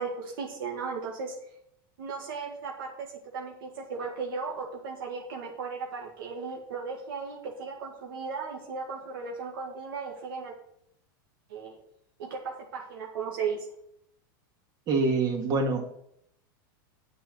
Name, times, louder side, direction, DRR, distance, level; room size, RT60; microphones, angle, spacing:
voice 1, 0.0-1.4 2.0-3.1 3.3-10.5 11.5-11.8 12.2-13.7, right 5 dB, 80° right, 0 dB, 1.9 m, -36 dB
voice 2, 14.9-15.9, right 3 dB, 35° right, 3 dB, 2.3 m, -25 dB
8.9 x 5.4 x 6.5 m, 0.74 s
supercardioid pair, 130°, 11 cm